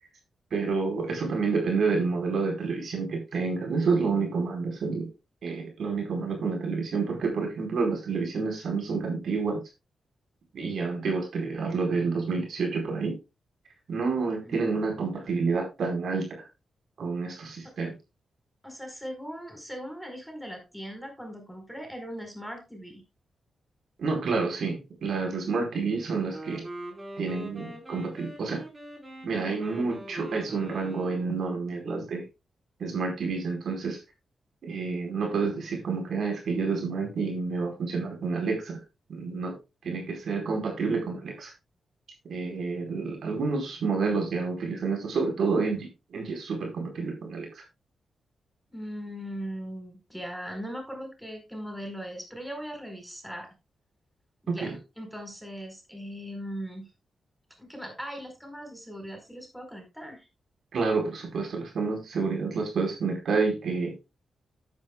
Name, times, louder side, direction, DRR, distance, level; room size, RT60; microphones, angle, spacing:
voice 1, 0.5-5.0 5.4-9.6 10.5-13.1 13.9-16.4 17.0-17.9 24.0-26.6 27.2-28.6 29.2-32.2 32.8-34.0 34.6-38.8 39.1-39.5 39.8-41.5 42.3-47.6 54.5-54.7 60.7-63.9, right 4 dB, 70° right, 1 dB, 4.7 m, -29 dB
voice 2, 18.6-23.0 48.7-53.5 54.4-56.9 57.6-60.3, equal, ahead, 4 dB, 4.8 m, -39 dB
Wind instrument woodwind instrument, 26.2-31.5, right 1 dB, 25° right, 4.9 m, -42 dB
13.0 x 10.0 x 2.4 m, 0.26 s
cardioid pair, 75°, 0 cm